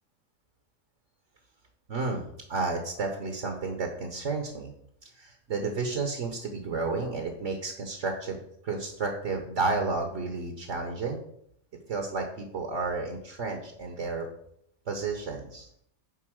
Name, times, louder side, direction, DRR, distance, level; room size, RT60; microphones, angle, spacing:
voice 1, 1.9-4.7 5.0-11.2 11.9-14.3 14.9-15.7, right 3 dB, 60° right, 3 dB, 1.4 m, -32 dB
9.9 x 4.1 x 6.2 m, 0.71 s
omnidirectional pair, 1.5 m